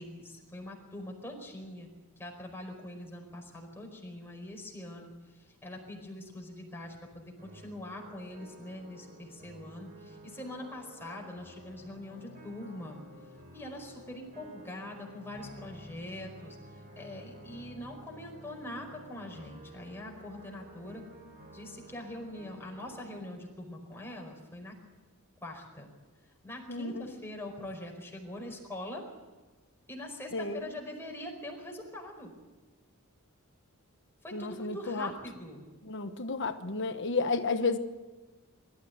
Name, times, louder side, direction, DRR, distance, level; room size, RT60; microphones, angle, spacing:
voice 1, 0.0-1.9 2.2-13.0 13.5-21.0 21.5-24.8 25.4-25.9 26.4-29.1 29.9-32.3 34.2-35.7, left 1 dB, 10° left, 1 dB, 4.9 m, -43 dB
sound 1, 7.4-23.3, right 1 dB, 40° right, 4.6 m, -52 dB
voice 2, 26.7-27.0 30.3-30.7 34.3-35.1 35.8-37.8, left 3 dB, 55° left, 9 dB, 1.2 m, -32 dB
23.5 x 13.5 x 9.5 m, 1.3 s
head